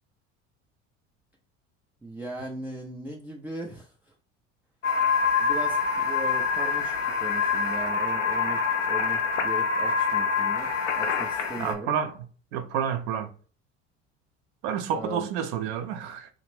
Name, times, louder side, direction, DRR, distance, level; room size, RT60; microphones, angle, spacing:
voice 1, 2.0-3.9 5.4-8.6 8.9-11.9 14.9-15.3, right 2 dB, 5° right, 0.3 m, -38 dB
sound 1, 4.8-11.7, left 5 dB, 85° left, 0.5 m, -25 dB
voice 2, 11.6-12.1 12.5-13.3 14.6-16.3, right 8 dB, 65° right, 0.6 m, -29 dB
2.4 x 2.1 x 3.0 m
figure-of-eight pair, 65°, 36 cm